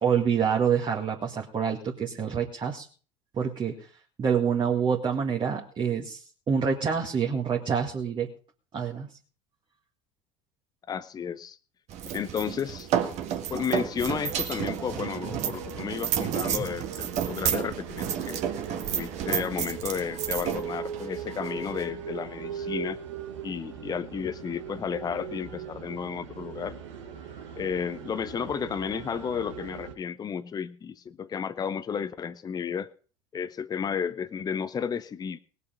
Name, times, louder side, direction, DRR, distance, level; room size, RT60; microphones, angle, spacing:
voice 1, 0.0-2.9 3.4-3.8 4.2-8.3 8.7-9.1 16.5-16.7, right 7 dB, 30° right, 0 dB, 2.0 m, -27 dB
voice 2, 10.9-11.6 12.1-12.9 13.5-23.0 23.4-26.8 27.6-32.9 33.3-35.4, left 7 dB, 25° left, 12 dB, 0.8 m, -33 dB
sound 1, 11.9-21.9, right 9 dB, 45° right, 1.8 m, -31 dB
sound 2, 14.2-29.9, right 7 dB, 70° right, 1.9 m, -40 dB
20.0 x 6.9 x 5.3 m, 0.39 s
figure-of-eight pair, 75°, 16 cm